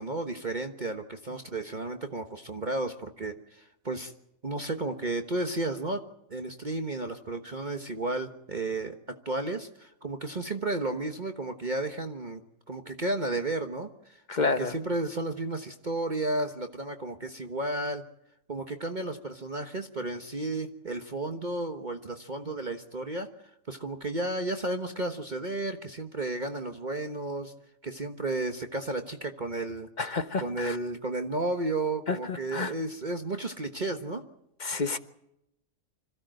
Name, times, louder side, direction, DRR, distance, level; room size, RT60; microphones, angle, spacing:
voice 1, 0.0-4.1 4.4-6.0 6.3-12.4 12.7-18.0 18.5-23.3 23.7-27.5 27.8-29.9 30.4-34.2, right 2 dB, 35° right, 1.3 m, -33 dB
voice 2, 14.3-14.7 30.0-30.8 32.1-32.7 34.6-35.0, left 4 dB, 35° left, 1.2 m, -29 dB
26.0 x 16.0 x 7.8 m
omnidirectional pair, 1.5 m